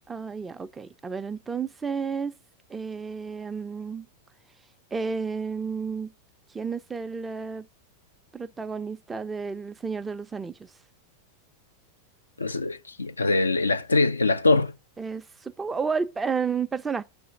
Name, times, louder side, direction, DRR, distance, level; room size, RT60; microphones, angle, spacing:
voice 1, 0.1-2.4 2.7-4.1 4.9-6.1 6.5-7.7 8.3-10.7 15.0-17.0, right 5 dB, 15° right, 0.5 m, -31 dB
voice 2, 12.4-14.7, left 3 dB, 80° left, 0.4 m, -23 dB
6.1 x 3.4 x 5.9 m
figure-of-eight pair, 90°, 0 cm